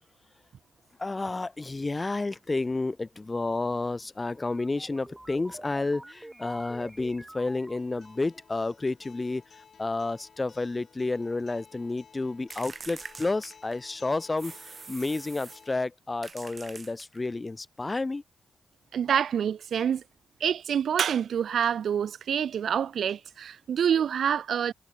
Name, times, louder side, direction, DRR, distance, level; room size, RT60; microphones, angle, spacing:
voice 1, 1.0-9.4 9.8-18.2, left 3 dB, 30° left, 1.1 m, -31 dB
sound 1, 4.3-8.5, right 1 dB, 15° right, 3.0 m, -47 dB
Acoustic guitar, 7.8-15.8, left 6 dB, 60° left, 5.1 m, -56 dB
sound 2, 12.5-13.9 14.4-15.7 16.2-17.3, right 4 dB, 40° right, 1.9 m, -44 dB
voice 2, 18.9-20.0 20.4-24.7, right 8 dB, 70° right, 0.4 m, -27 dB
cardioid pair, 60°, 0 cm